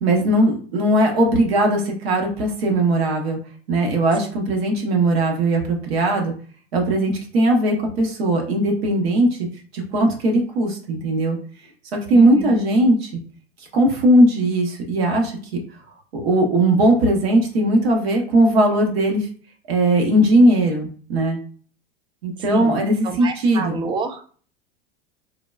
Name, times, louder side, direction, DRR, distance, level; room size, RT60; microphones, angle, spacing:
voice 1, 0.0-3.4 3.7-6.3 6.7-9.4 9.7-11.4 11.9-13.1 13.7-15.6 16.1-19.3 19.7-21.4 22.2-23.8, right 1 dB, 70° right, 2 dB, 1.0 m, -18 dB
voice 2, 12.1-12.6 22.5-24.2, right 4 dB, 15° right, 7 dB, 0.3 m, -29 dB
3.7 x 2.2 x 2.3 m, 0.43 s
hypercardioid pair, 95°, 32 cm